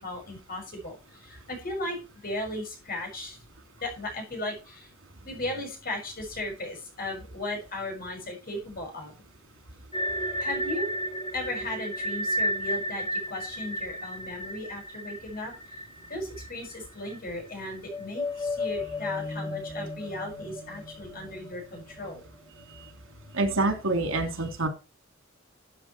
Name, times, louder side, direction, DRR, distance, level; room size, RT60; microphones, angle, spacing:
voice 1, 0.0-2.0 2.2-3.4 3.8-4.9 5.2-9.2 10.4-11.0 11.3-15.5 16.1-22.2, left 1 dB, 50° left, 3 dB, 6.2 m, -36 dB
sound 1, 9.9-16.8 17.0-17.2 17.7-23.1, equal, 30° left, 2.5 m, -33 dB
voice 2, 23.3-24.7, right 2 dB, 90° right, 6 dB, 3.1 m, -27 dB
13.0 x 7.5 x 4.5 m, 0.31 s
head